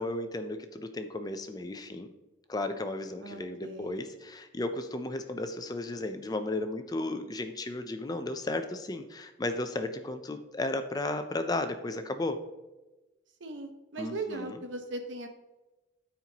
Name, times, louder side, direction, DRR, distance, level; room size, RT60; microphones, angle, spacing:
voice 1, 0.0-2.1 2.5-12.4 14.0-14.6, left 2 dB, 20° left, 8 dB, 0.4 m, -34 dB
voice 2, 3.2-4.0 13.4-15.3, right 2 dB, 75° right, 6 dB, 1.0 m, -38 dB
13.0 x 4.4 x 2.9 m, 1.1 s
head